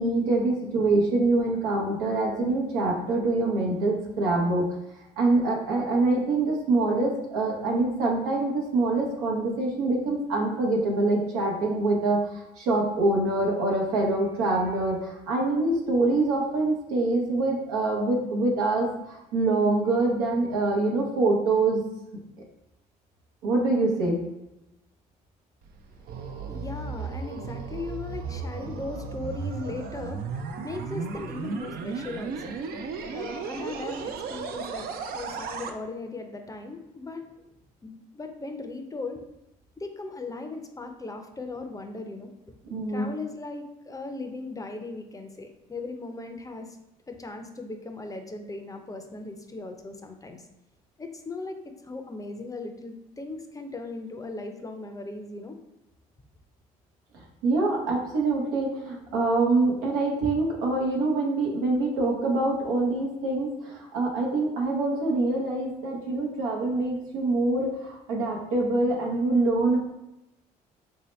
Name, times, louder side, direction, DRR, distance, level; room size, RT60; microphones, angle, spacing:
voice 1, 0.0-4.7 5.2-21.8 23.4-24.2 42.7-43.1 57.1-69.8, right 2 dB, 90° right, -1 dB, 0.8 m, -25 dB
sound 1, 25.6-35.7, right 5 dB, 60° right, 0.4 m, -35 dB
voice 2, 25.9-32.9 33.1-37.3 37.8-39.2 39.8-42.3 42.9-46.8 47.1-50.4 51.0-55.6, left 3 dB, 20° left, 5 dB, 0.5 m, -38 dB
3.3 x 2.7 x 3.1 m, 0.89 s
supercardioid pair, 60°, 17 cm